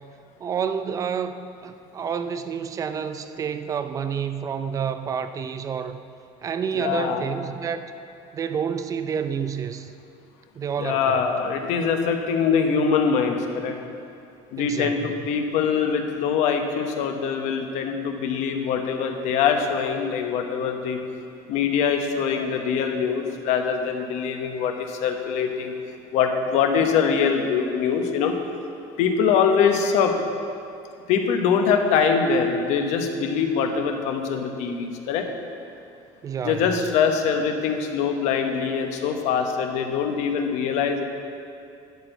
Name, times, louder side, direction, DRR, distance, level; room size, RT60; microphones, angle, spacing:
voice 1, 0.4-6.0 6.4-7.8 8.3-9.9 10.6-11.2 14.6-15.2 36.2-36.8, right 7 dB, 25° right, 10 dB, 0.4 m, -29 dB
voice 2, 6.7-7.2 10.8-13.8 14.5-21.0 21.5-25.7 26.1-28.3 29.0-30.1 31.1-35.3 36.4-41.0, left 6 dB, 60° left, 5 dB, 1.0 m, -23 dB
11.5 x 4.5 x 8.0 m, 2.5 s
cardioid pair, 155°, 13 cm